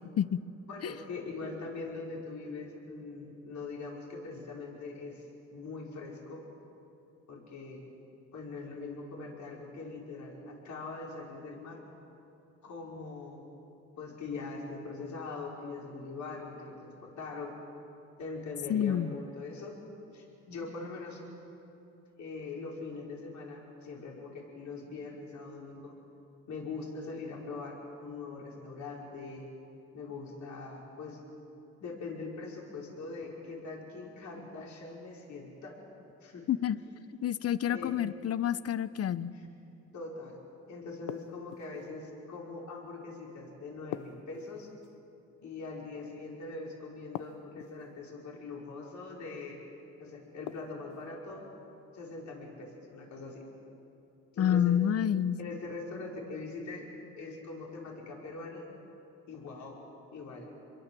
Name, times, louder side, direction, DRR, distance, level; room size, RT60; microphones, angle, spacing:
voice 1, 0.7-5.2 5.5-6.4 7.3-7.8 8.3-11.8 12.6-13.5 14.0-17.5 18.2-19.8 20.1-21.2 22.2-25.9 26.5-29.5 29.9-31.2 31.8-35.8 36.2-36.5 36.9-37.0 37.7-37.9 39.3-39.5 39.9-40.4 40.7-44.7 45.4-49.6 50.0-51.5 51.9-53.5 54.3-54.8 55.4-56.9 57.1-58.7 59.3-59.8 60.1-60.5, left 3 dB, 70° left, -2 dB, 5.4 m, -42 dB
voice 2, 18.7-19.1 36.5-36.8 37.2-39.3 54.4-55.4, left 9 dB, 50° left, 16 dB, 0.8 m, -28 dB
sound 1, 41.1-41.9 43.9-45.0 47.1-47.9 50.5-51.1, left 12 dB, 85° left, 0.8 m, -42 dB
27.0 x 22.5 x 7.7 m, 2.9 s
cardioid pair, 90°, 30 cm